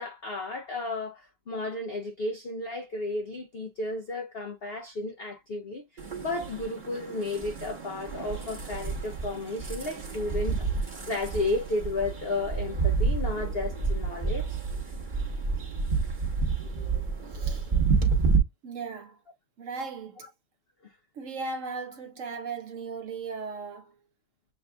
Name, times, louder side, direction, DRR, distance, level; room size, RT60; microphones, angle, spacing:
voice 1, 0.0-14.6 20.8-20.9, left 2 dB, 60° left, 0.6 m, -33 dB
sound 1, 6.0-18.4, right 4 dB, 35° right, 1.0 m, -29 dB
voice 2, 17.3-17.7 18.6-19.2 19.6-20.3 21.2-23.9, right 4 dB, 55° right, 1.0 m, -37 dB
7.3 x 2.6 x 2.2 m
omnidirectional pair, 1.8 m